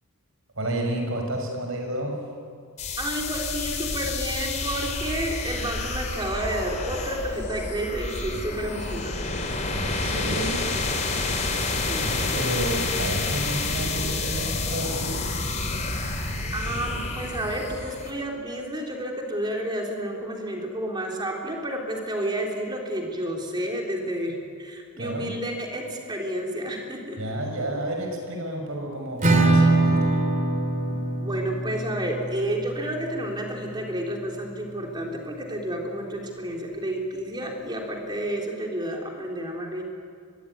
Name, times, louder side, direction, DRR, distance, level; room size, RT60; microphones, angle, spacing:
voice 1, 0.5-2.2 9.6-10.7 12.0-15.2 25.0-25.3 27.2-30.2, right 1 dB, 65° right, 2 dB, 6.2 m, -31 dB
sound 1, 2.8-18.1, left 3 dB, 35° left, 3.2 m, -29 dB
voice 2, 3.0-9.3 11.9-12.5 16.5-27.2 30.9-39.8, right 1 dB, 20° right, 0 dB, 3.8 m, -31 dB
Acoustic guitar / Strum, 29.2-34.7, right 2 dB, 35° right, 3.2 m, -24 dB
24.5 x 21.5 x 9.7 m, 2.3 s
head